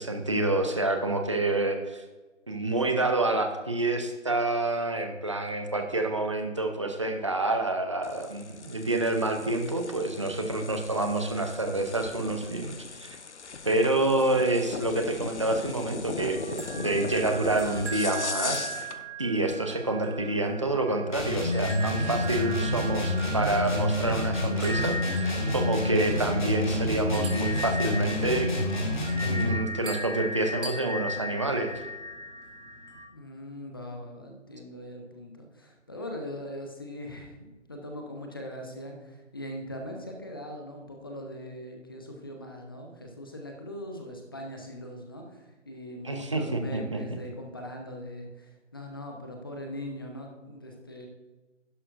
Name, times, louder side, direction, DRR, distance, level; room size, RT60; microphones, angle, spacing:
voice 1, 0.0-2.0 2.5-13.2 13.6-18.7 19.2-28.5 29.3-31.9 46.0-47.0, right 2 dB, 25° right, 5 dB, 0.7 m, -28 dB
sound 1, 8.0-19.0, left 5 dB, 65° left, 0.9 m, -39 dB
sound 2, 16.2-33.1, right 1 dB, 70° right, 3.0 m, -38 dB
sound 3, 21.1-29.6, left 1 dB, 40° left, 2.1 m, -28 dB
voice 2, 33.1-51.1, left 1 dB, 20° left, 2 dB, 0.8 m, -41 dB
11.0 x 11.0 x 2.6 m, 1.2 s
figure-of-eight pair, 160°, 37 cm